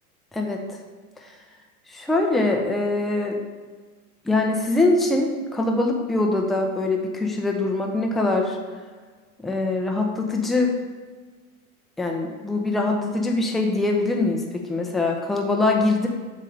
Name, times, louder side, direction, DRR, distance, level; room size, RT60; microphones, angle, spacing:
voice 1, 1.9-3.4 4.3-8.6 9.4-10.8 12.0-16.1, left 2 dB, ahead, 1 dB, 0.4 m, -23 dB
7.7 x 3.2 x 5.2 m, 1.5 s
hypercardioid pair, 105°, 44 cm